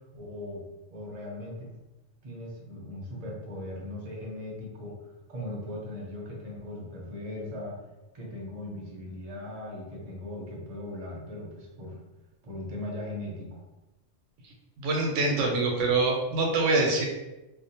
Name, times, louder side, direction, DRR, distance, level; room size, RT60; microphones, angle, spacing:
voice 1, 0.1-0.6 0.9-1.7 2.2-5.0 5.3-7.8 8.1-12.0 12.4-13.6, left 1 dB, 45° right, -2 dB, 0.5 m, -39 dB
voice 2, 14.8-17.0, right 3 dB, 90° right, 0 dB, 0.9 m, -25 dB
2.4 x 2.1 x 2.7 m, 1.0 s
omnidirectional pair, 1.2 m